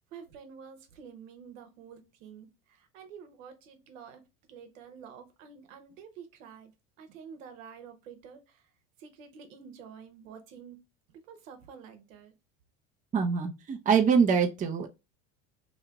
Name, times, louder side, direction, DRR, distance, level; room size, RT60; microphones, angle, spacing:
voice 1, 0.0-4.2 4.5-6.7 7.0-8.7 9.0-10.8 11.1-12.3, right 7 dB, 75° right, 1.0 m, -49 dB
voice 2, 13.1-14.9, right 6 dB, 20° right, 0.6 m, -24 dB
3.0 x 2.7 x 3.4 m
hypercardioid pair, 90°, 39 cm